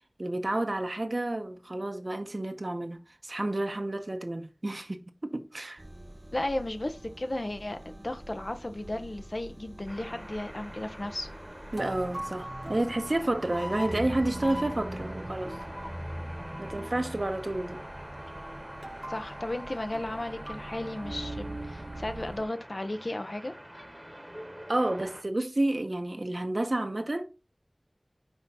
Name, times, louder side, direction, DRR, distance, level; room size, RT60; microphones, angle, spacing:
voice 1, 0.2-5.8 11.7-15.6 16.2-17.9 24.7-27.3, right 1 dB, 65° right, 0.9 m, -30 dB
sound 1, 5.8-22.5, right 1 dB, 50° right, 0.5 m, -43 dB
voice 2, 6.3-11.3 19.1-23.5, left 1 dB, 65° left, 0.8 m, -34 dB
sound 2, 9.9-25.2, equal, 10° right, 1.1 m, -46 dB
sound 3, 13.5-18.7, equal, 15° left, 0.4 m, -40 dB
5.7 x 4.6 x 4.2 m
wide cardioid pair, 45°, 0 cm